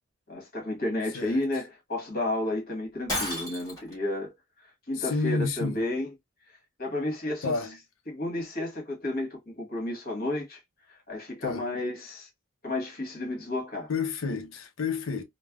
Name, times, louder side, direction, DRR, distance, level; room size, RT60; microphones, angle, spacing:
voice 1, 0.3-4.3 4.9-6.1 6.8-7.6 8.1-10.6 10.9-12.3 12.6-13.9, left 2 dB, 40° left, 1.4 m, -32 dB
Shatter, 3.1-3.9, left 1 dB, 15° left, 1.3 m, -32 dB
voice 2, 5.0-5.8 7.4-7.8 11.4-11.6 13.9-15.2, left 4 dB, 65° left, 0.6 m, -30 dB
3.2 x 2.1 x 2.3 m
head